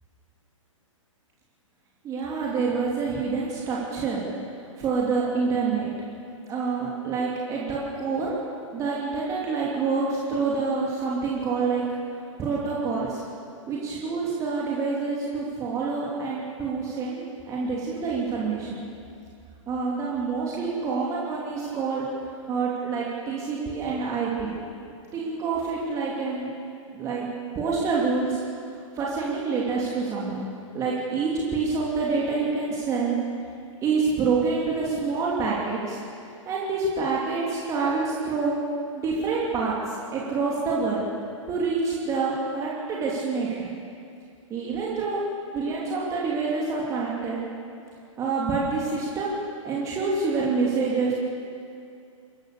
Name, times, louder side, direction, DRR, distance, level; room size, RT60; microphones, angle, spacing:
voice 1, 2.0-4.2 4.8-5.9 6.5-8.4 8.7-11.8 12.4-13.2 13.7-18.8 19.7-22.0 22.5-24.5 25.1-26.5 26.9-27.3 27.5-28.4 29.0-30.4 30.7-33.2 33.8-36.0 36.5-38.6 38.9-39.7 40.1-41.0 41.5-43.6 44.5-45.2 45.5-47.4 48.2-51.1, right 4 dB, 20° right, -4 dB, 3.0 m, -27 dB
27.0 x 15.5 x 6.8 m, 2.5 s
figure-of-eight pair, 115°, 17 cm